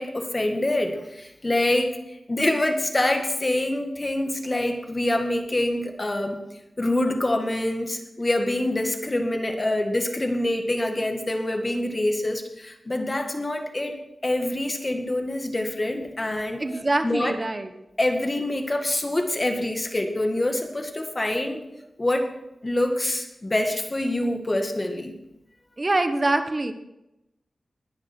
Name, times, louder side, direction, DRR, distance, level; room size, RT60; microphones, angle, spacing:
voice 1, 0.0-6.4 6.8-14.0 14.2-16.6 17.0-17.4 18.0-21.7 22.0-22.3 22.6-25.2, left 1 dB, 25° left, 4 dB, 2.0 m, -25 dB
voice 2, 16.6-17.7 25.8-26.7, right 2 dB, 30° right, 8 dB, 1.2 m, -24 dB
21.0 x 10.5 x 4.6 m, 0.90 s
wide cardioid pair, 120°, 0 cm